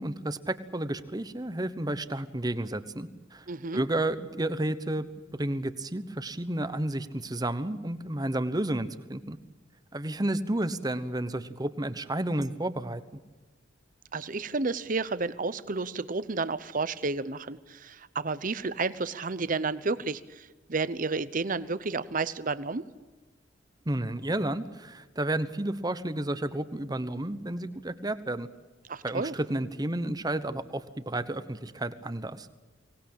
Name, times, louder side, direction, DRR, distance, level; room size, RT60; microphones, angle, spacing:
voice 1, 0.0-3.4 3.7-5.1 5.4-9.4 9.9-13.0 23.9-28.5 29.0-32.5, right 1 dB, 20° right, 13 dB, 1.1 m, -31 dB
voice 2, 3.5-3.8 14.1-22.9 28.9-29.3, right 3 dB, 45° right, 15 dB, 0.9 m, -31 dB
24.5 x 19.0 x 8.8 m, 1.3 s
head